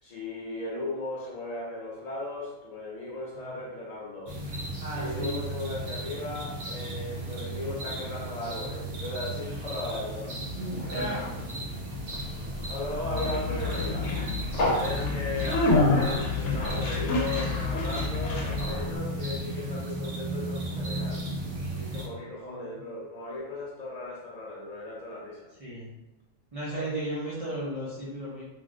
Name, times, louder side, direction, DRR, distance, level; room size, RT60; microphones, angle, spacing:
voice 1, 0.0-4.3 4.9-10.3 12.7-14.1 14.6-21.2 21.7-25.5 26.7-26.9, left 2 dB, 80° left, -5 dB, 0.3 m, -37 dB
sound 1, 4.3-22.1, right 1 dB, 60° right, 0.9 m, -35 dB
voice 2, 4.8-5.4 10.6-11.3 22.4-22.8 25.6-25.9 26.5-28.4, right 1 dB, 35° right, -9 dB, 0.6 m, -35 dB
Conversation, 9.5-19.0, left 2 dB, 65° left, 0.9 m, -29 dB
3.2 x 2.5 x 2.4 m, 0.98 s
omnidirectional pair, 1.4 m